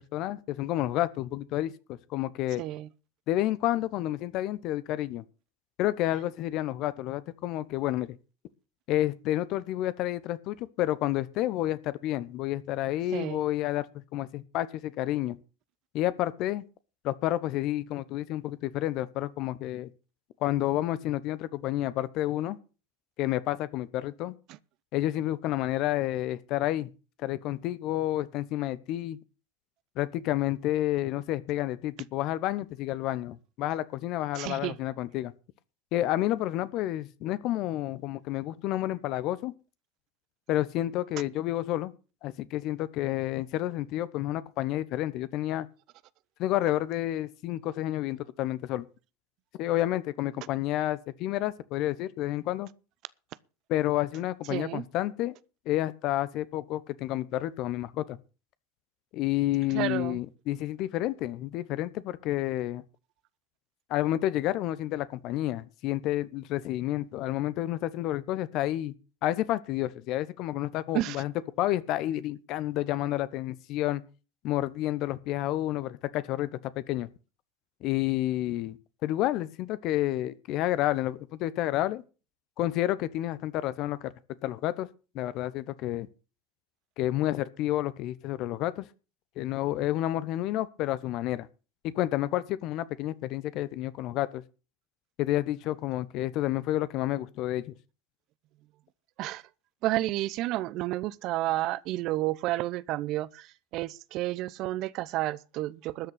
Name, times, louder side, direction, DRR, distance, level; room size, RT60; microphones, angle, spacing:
voice 1, 0.0-2.6 3.3-5.2 5.8-8.2 8.9-15.4 15.9-16.6 17.0-19.9 20.4-22.6 23.2-24.3 24.9-26.9 27.2-29.2 30.0-35.3 35.9-39.5 40.5-41.9 42.2-45.7 46.4-48.8 49.6-52.7 53.7-55.3 55.7-58.2 59.1-62.8 63.9-68.9 69.2-74.0 74.4-77.1 77.8-82.0 82.6-84.1 84.4-84.9 85.1-86.1 87.0-88.9 89.4-91.5 91.8-94.4 95.2-97.7, left 14 dB, 50° left, 1.0 m, -30 dB
voice 2, 2.6-2.9 13.1-13.4 34.3-34.8 54.5-54.8 59.7-60.2 70.9-71.2 99.2-99.4 99.8-106.1, right 16 dB, 50° right, 0.7 m, -31 dB
13.0 x 6.7 x 8.1 m
figure-of-eight pair, 75°, 0 cm